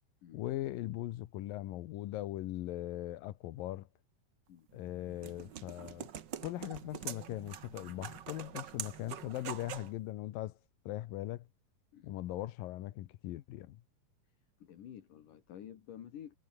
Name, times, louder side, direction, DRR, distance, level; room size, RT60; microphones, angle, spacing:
voice 1, 0.3-3.9 4.7-6.1 6.4-10.5 10.9-11.5 12.0-13.8, left 15 dB, 90° left, 2.8 m, -40 dB
sound 1, 4.7-9.9, right 9 dB, 90° right, 0.9 m, -45 dB
voice 2, 14.6-16.4, left 10 dB, 70° left, 3.5 m, -50 dB
omnidirectional pair, 3.9 m